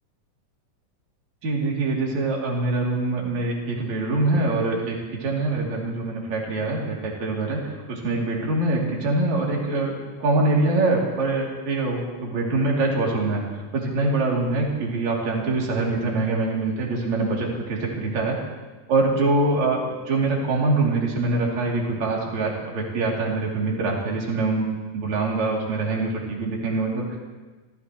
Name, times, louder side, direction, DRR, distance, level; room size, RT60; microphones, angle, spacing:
voice 1, 1.4-13.4 13.7-18.4 18.9-24.7 24.9-27.2, right 2 dB, 55° right, -3 dB, 4.1 m, -24 dB
29.5 x 15.0 x 3.1 m, 1.3 s
omnidirectional pair, 4.0 m